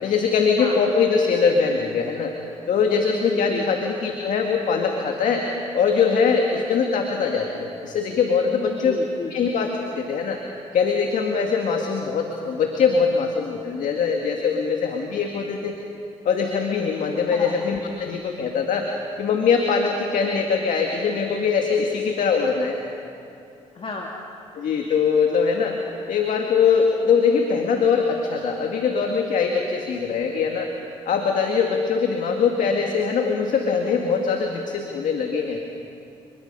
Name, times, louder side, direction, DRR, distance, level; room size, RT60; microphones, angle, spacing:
voice 1, 0.0-2.3 2.7-5.5 5.7-9.0 9.3-9.7 10.0-10.4 10.7-15.8 16.2-18.9 19.2-22.8 24.6-25.8 26.1-30.7 31.1-35.6, left 5 dB, 70° left, 2 dB, 2.1 m, -22 dB
voice 2, 3.1-3.6 8.5-9.3 17.3-17.5 23.7-24.1, left 3 dB, 45° left, -1 dB, 2.5 m, -32 dB
30.0 x 21.5 x 5.5 m, 2.7 s
supercardioid pair, 60°, 14 cm